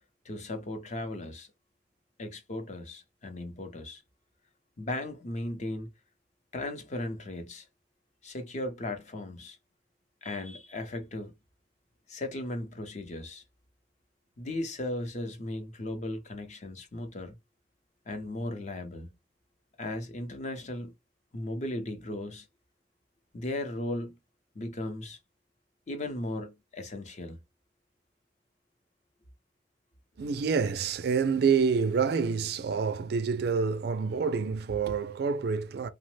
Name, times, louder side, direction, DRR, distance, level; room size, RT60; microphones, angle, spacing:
voice 1, 0.2-1.5 2.2-4.0 4.8-5.9 6.5-7.7 8.2-9.6 10.2-11.3 12.1-13.4 14.4-17.4 18.1-19.1 19.8-20.9 21.3-22.5 23.3-24.1 24.5-25.2 25.9-27.4, left 1 dB, 40° left, 0.7 m, -36 dB
voice 2, 30.2-35.9, right 5 dB, 60° right, 0.4 m, -27 dB
2.9 x 2.1 x 3.1 m
head